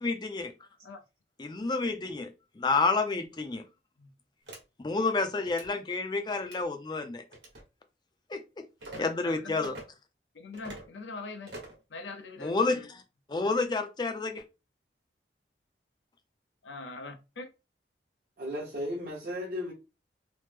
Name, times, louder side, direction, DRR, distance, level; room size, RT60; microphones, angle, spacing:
voice 1, 0.0-0.5 1.4-2.3 2.6-3.6 4.8-7.2 8.3-8.6 9.0-9.7 12.4-12.9 13.3-14.4, left 3 dB, 25° left, 0.4 m, -29 dB
sound 1, 4.5-4.6 5.4-5.7 6.4-6.6 7.3-7.6 8.8-9.0 9.6-9.8 10.5-10.9 11.5-11.8, right 2 dB, 75° right, 1.1 m, -44 dB
voice 2, 8.9-9.7 10.3-11.5 11.9-12.9 16.6-17.5, left 3 dB, 85° left, 0.6 m, -42 dB
voice 3, 18.4-19.7, left 1 dB, 50° right, 0.8 m, -35 dB
3.1 x 2.0 x 3.3 m
head